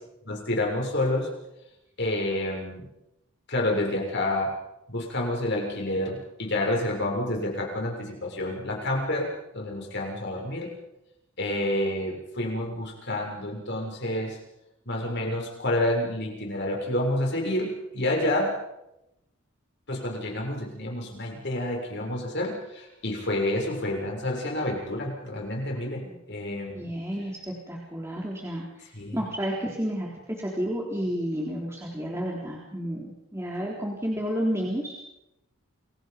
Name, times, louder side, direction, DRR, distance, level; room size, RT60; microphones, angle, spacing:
voice 1, 0.2-1.3 2.0-2.8 3.5-4.5 4.9-10.7 11.4-14.4 14.8-18.5 19.9-26.9 28.9-29.2, left 1 dB, 55° left, 0 dB, 6.9 m, -29 dB
voice 2, 26.7-28.6 29.1-35.1, equal, 15° right, -3 dB, 3.8 m, -31 dB
29.5 x 23.0 x 5.3 m, 0.88 s
head